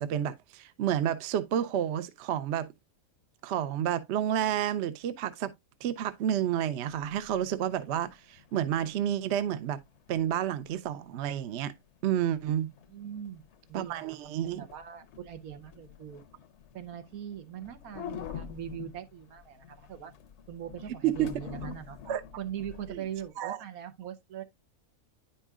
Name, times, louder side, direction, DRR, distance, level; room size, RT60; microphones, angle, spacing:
voice 1, 0.0-2.7 3.4-5.5 5.8-9.8 10.1-11.7 12.0-12.7 13.7-14.6 21.0-21.3 22.1-22.2 22.9-23.0 23.4-23.6, right 10 dB, 60° right, 0.8 m, -30 dB
sound 1, 6.9-23.3, left 8 dB, 60° left, 0.9 m, -47 dB
voice 2, 12.9-13.4 13.7-16.2 16.7-20.1 20.5-22.0 22.4-24.5, right 10 dB, 85° right, 1.3 m, -41 dB
9.8 x 5.5 x 2.3 m
omnidirectional pair, 1.5 m